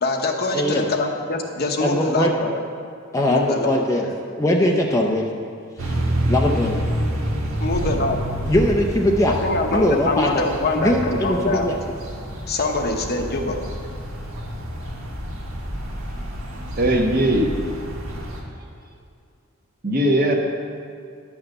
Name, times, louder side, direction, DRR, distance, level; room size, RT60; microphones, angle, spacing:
voice 1, 0.0-2.5 3.3-4.1 7.6-8.2 9.3-11.7 12.5-13.6, left 2 dB, 50° left, 3 dB, 0.9 m, -24 dB
voice 2, 0.5-0.9 1.8-2.3 3.1-4.1 4.4-5.3 5.8-6.0 6.3-6.8 8.4-9.3 9.7-10.4 10.8-11.7, left 1 dB, 15° left, 0 dB, 0.5 m, -20 dB
sound 1, 5.8-18.4, equal, 90° right, 1.5 m, -28 dB
voice 3, 16.8-17.5 19.8-20.3, right 1 dB, 45° right, 1 dB, 1.2 m, -19 dB
10.5 x 6.0 x 6.6 m, 2.2 s
head